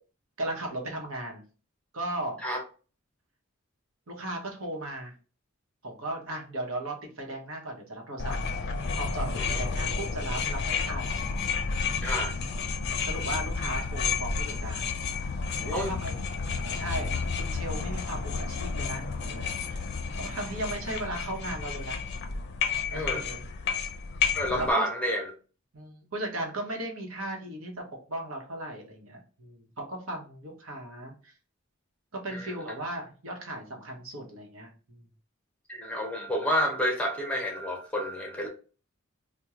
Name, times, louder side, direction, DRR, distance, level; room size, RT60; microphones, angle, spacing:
voice 1, 0.4-1.4 1.9-2.5 4.1-5.1 5.8-11.2 13.0-15.0 15.6-16.1 16.6-19.8 20.2-22.0 22.9-23.5 24.6-24.7 25.7-27.7 28.1-31.3 32.1-35.1, right 1 dB, 80° right, 1.0 m, -37 dB
sound 1, 8.2-24.7, left 5 dB, 55° left, 0.4 m, -31 dB
voice 2, 12.0-12.3 15.7-15.9 22.9-23.2 24.3-25.3 32.3-32.5 35.7-38.5, equal, 5° left, 0.7 m, -29 dB
3.0 x 2.2 x 3.5 m
head